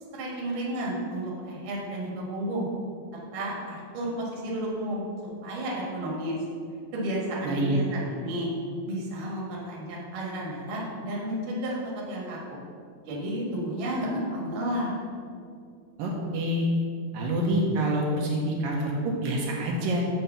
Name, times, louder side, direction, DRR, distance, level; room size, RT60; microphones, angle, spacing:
voice 1, 0.1-2.7 3.3-6.4 6.9-8.5 8.9-11.8 12.1-12.6 13.0-15.0, right 1 dB, 45° right, -3 dB, 1.8 m, -32 dB
voice 2, 7.4-7.8 16.0-16.7 17.1-20.0, right 1 dB, 75° right, -2 dB, 2.5 m, -26 dB
9.6 x 3.3 x 6.8 m, 2.3 s
omnidirectional pair, 4.2 m